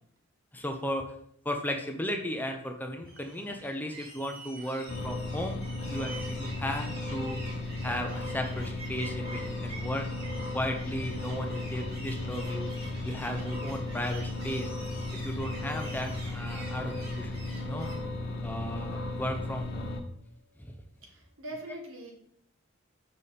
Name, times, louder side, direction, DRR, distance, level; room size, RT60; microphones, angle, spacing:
voice 1, 0.5-1.1 1.4-7.4 7.8-10.1 10.5-12.7 13.0-14.7 15.2-17.3 17.6-17.9 18.4-19.9 20.7-20.8 21.7-21.8, equal, 10° left, 4 dB, 0.6 m, -35 dB
sound 1, 3.1-18.0, right 2 dB, 50° right, 3.2 m, -47 dB
sound 2, 4.9-20.0, left 2 dB, 50° left, 0.9 m, -35 dB
voice 2, 21.0-22.1, right 1 dB, 70° right, 1 dB, 1.8 m, -42 dB
6.9 x 5.2 x 4.2 m, 0.69 s
head